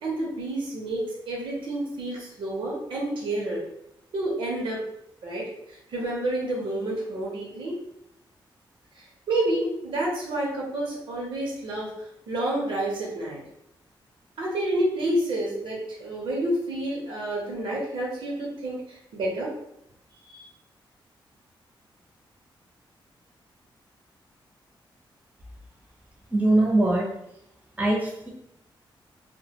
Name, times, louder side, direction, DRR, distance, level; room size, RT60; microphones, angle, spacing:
voice 1, 0.0-3.6 4.1-4.8 5.2-7.8 8.9-13.4 14.4-19.5 20.3-20.4, right 1 dB, 75° right, -3 dB, 0.7 m, -29 dB
voice 2, 26.3-27.1 27.8-28.3, right 2 dB, 15° right, -2 dB, 0.5 m, -22 dB
2.2 x 2.1 x 2.7 m, 0.82 s
wide cardioid pair, 165°, 9 cm